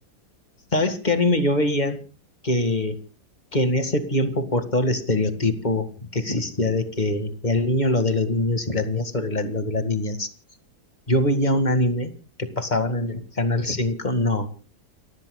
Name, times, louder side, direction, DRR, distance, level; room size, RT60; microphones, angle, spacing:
voice 1, 0.7-2.0 2.4-3.0 3.5-10.3 11.1-12.1 12.4-14.5, left 1 dB, 25° left, 9 dB, 2.1 m, -23 dB
29.5 x 15.0 x 2.3 m, 0.34 s
omnidirectional pair, 1.8 m